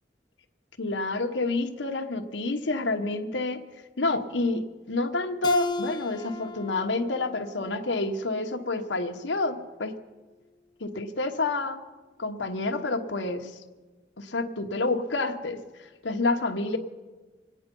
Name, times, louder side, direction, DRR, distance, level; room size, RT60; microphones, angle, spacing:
voice 1, 0.8-3.6 4.0-4.6 4.9-9.9 10.8-11.8 12.2-13.6 14.2-16.8, left 2 dB, 85° left, 4 dB, 1.2 m, -28 dB
Keyboard (musical), 5.4-8.7, left 3 dB, 25° left, 0.5 m, -37 dB
25.5 x 9.5 x 5.4 m, 1.3 s
head